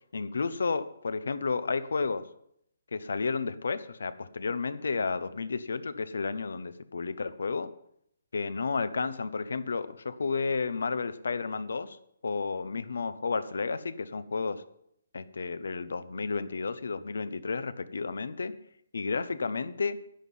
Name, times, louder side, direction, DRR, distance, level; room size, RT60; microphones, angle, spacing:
voice 1, 0.1-2.2 2.9-7.7 8.3-12.0 12.2-14.6 15.1-18.5 18.9-20.0, left 4 dB, 80° left, 15 dB, 0.8 m, -32 dB
10.5 x 9.5 x 5.5 m, 0.73 s
hypercardioid pair, 175°, 0 cm